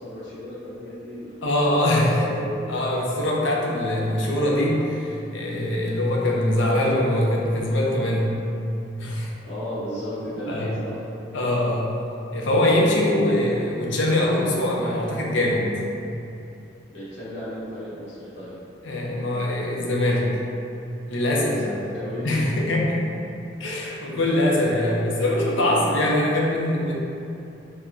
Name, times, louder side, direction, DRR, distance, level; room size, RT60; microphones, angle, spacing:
voice 1, 0.0-2.5 9.4-10.9 16.9-18.5 21.5-22.5, equal, 65° left, -11 dB, 1.0 m, -34 dB
voice 2, 1.4-2.2 2.7-8.3 9.0-9.3 10.5-10.7 11.3-11.9 12.3-15.7 18.8-20.3 21.1-21.6 22.2-23.0 23.6-26.9, left 1 dB, 90° left, -3 dB, 0.6 m, -22 dB
4.7 x 2.1 x 2.6 m, 2.8 s
head